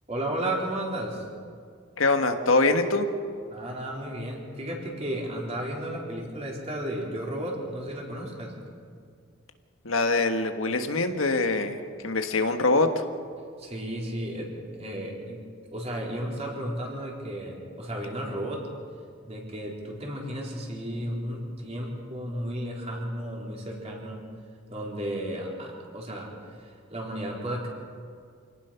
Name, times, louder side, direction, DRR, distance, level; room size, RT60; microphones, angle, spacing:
voice 1, 0.1-1.3 3.5-8.5 13.6-15.4 15.7-18.6 19.3-24.2 24.7-27.7, right 1 dB, 30° right, -2 dB, 4.1 m, -33 dB
voice 2, 2.0-3.1 9.8-11.8 12.0-12.9, left 3 dB, 85° left, 6 dB, 1.5 m, -23 dB
26.5 x 18.0 x 5.8 m, 2.2 s
head